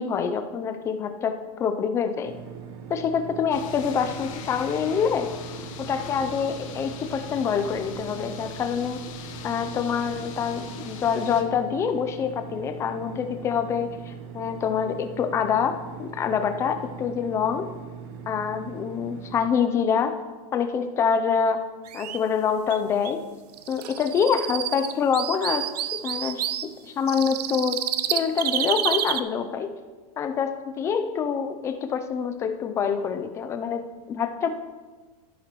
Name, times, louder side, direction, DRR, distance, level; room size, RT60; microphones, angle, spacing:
voice 1, 0.0-2.3 2.9-5.3 5.8-9.0 9.4-17.6 18.3-20.1 20.5-21.7 21.9-23.2 23.7-27.8 28.1-29.7 30.2-34.5, left 7 dB, 15° left, 8 dB, 0.4 m, -26 dB
sound 1, 2.2-19.5, right 7 dB, 40° right, 1.0 m, -41 dB
sound 2, 3.5-11.4, left 7 dB, 55° left, 1.1 m, -41 dB
sound 3, 21.9-22.2 22.7-22.8 23.0-23.1 23.5-26.6 27.1-29.2, right 11 dB, 80° right, 0.6 m, -29 dB
12.0 x 10.0 x 3.0 m, 1.3 s
supercardioid pair, 160°, 20 cm